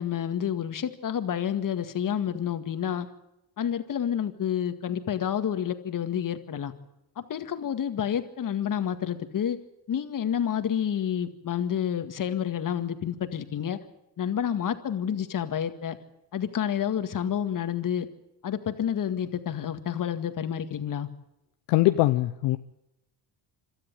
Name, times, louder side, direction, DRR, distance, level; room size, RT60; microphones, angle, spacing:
voice 1, 0.0-3.1 3.6-6.7 7.2-9.6 9.9-13.8 14.2-16.0 16.3-18.1 18.4-21.1, left 9 dB, 50° left, 9 dB, 2.0 m, -29 dB
voice 2, 21.7-22.6, left 17 dB, 70° left, 9 dB, 0.9 m, -22 dB
27.0 x 13.0 x 9.3 m, 0.89 s
supercardioid pair, 70°, 43 cm